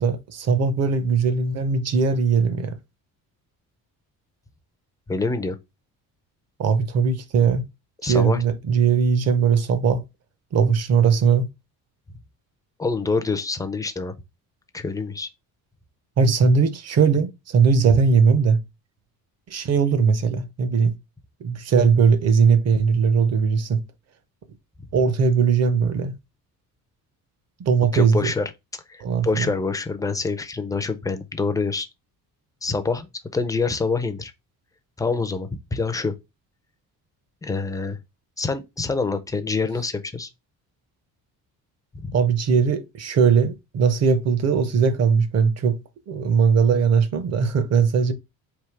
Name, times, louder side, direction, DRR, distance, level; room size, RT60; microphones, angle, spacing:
voice 1, 0.0-2.8 6.6-7.7 8.0-10.0 10.5-11.5 16.2-18.6 19.5-20.9 21.4-23.8 24.9-26.2 27.6-28.3 29.0-29.5 42.1-45.8 46.1-48.1, right 5 dB, 45° right, 0.6 m, -19 dB
voice 2, 5.1-5.6 8.0-8.4 12.8-14.1 14.7-15.3 27.9-28.5 28.9-31.9 32.6-33.1 33.3-34.3 35.0-36.1 37.4-38.0 38.4-40.3 42.0-42.1, left 4 dB, 10° left, 0.3 m, -26 dB
3.5 x 2.7 x 4.5 m
cardioid pair, 140°, 37 cm